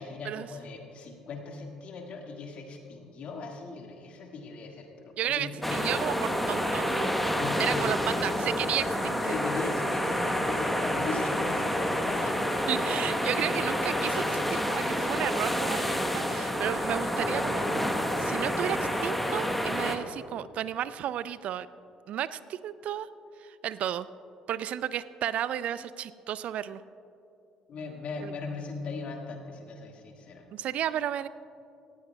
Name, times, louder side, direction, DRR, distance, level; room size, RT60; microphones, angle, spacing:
voice 1, 0.0-5.9 7.4-8.0 9.3-12.6 27.7-30.5, left 4 dB, 50° left, 2 dB, 1.8 m, -39 dB
voice 2, 5.2-7.1 7.6-9.3 12.7-17.6 18.2-21.7 22.1-23.1 23.4-24.1 24.5-26.8 28.2-28.3 30.5-31.3, right 10 dB, 55° right, 16 dB, 0.4 m, -33 dB
sound 1, 5.6-20.0, equal, 5° left, 1.1 m, -28 dB
18.5 x 15.0 x 2.3 m, 2.7 s
hypercardioid pair, 55°, 3 cm